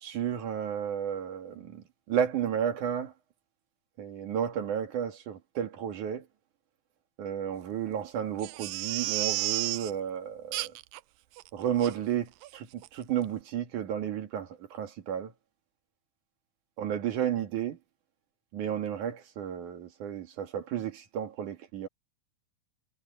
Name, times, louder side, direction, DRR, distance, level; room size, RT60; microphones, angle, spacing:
voice 1, 0.0-3.1 4.0-6.3 7.2-10.7 11.5-15.3 16.8-17.8 18.5-21.9, right 9 dB, 70° right, 3.4 m, -32 dB
Crying sobbing, 8.4-9.9 10.5-11.0 11.4-11.5 11.8-11.9 12.4-12.6 12.8-12.9, right 18 dB, 90° right, 2.3 m, -32 dB
omnidirectional pair, 3.7 m